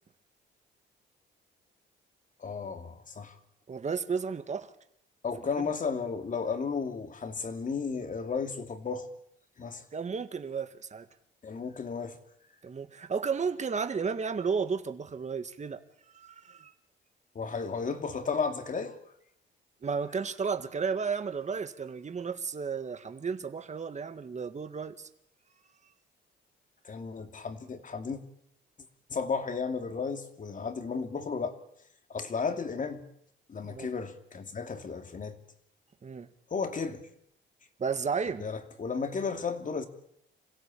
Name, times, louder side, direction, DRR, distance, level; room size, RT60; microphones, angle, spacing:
voice 1, 2.4-3.4 5.2-9.1 9.6-9.8 11.4-12.2 17.3-19.0 26.8-28.2 29.1-31.6 32.1-33.1 33.5-35.4 36.5-37.1 38.4-39.9, left 5 dB, 40° left, 7 dB, 3.0 m, -34 dB
voice 2, 3.7-4.7 9.9-11.1 12.6-15.8 16.1-16.7 19.8-25.1 33.6-33.9 36.0-36.3 37.8-38.5, right 5 dB, 35° right, 9 dB, 2.0 m, -33 dB
27.0 x 16.5 x 8.7 m, 0.73 s
cardioid pair, 90°, 20 cm